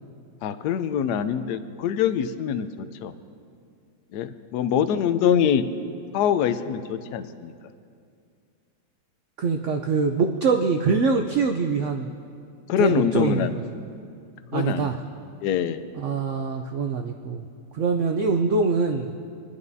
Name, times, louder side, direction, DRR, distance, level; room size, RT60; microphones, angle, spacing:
voice 1, 0.4-3.1 4.1-5.6 6.1-7.5 12.7-13.5 14.5-15.0 15.4-15.8, left 9 dB, 70° left, 12 dB, 1.1 m, -24 dB
voice 2, 9.4-12.1 12.8-13.5 14.5-15.0 15.9-17.5 17.7-19.1, right 4 dB, 75° right, 5 dB, 0.6 m, -24 dB
24.0 x 11.0 x 2.7 m, 2.3 s
omnidirectional pair, 2.0 m